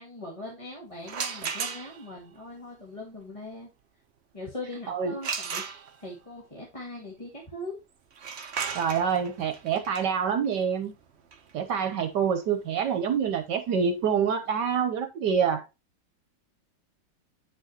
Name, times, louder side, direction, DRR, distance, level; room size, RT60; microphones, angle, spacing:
voice 1, 0.0-3.7 4.3-5.6 6.0-7.8, left 2 dB, 20° left, 2.0 m, -40 dB
sound 1, 1.0-2.2 5.2-6.2 8.1-13.8, right 6 dB, 50° right, 0.9 m, -36 dB
voice 2, 4.9-5.2 8.7-10.9 11.5-15.6, right 7 dB, 70° right, 1.5 m, -26 dB
9.1 x 6.1 x 2.9 m
omnidirectional pair, 2.0 m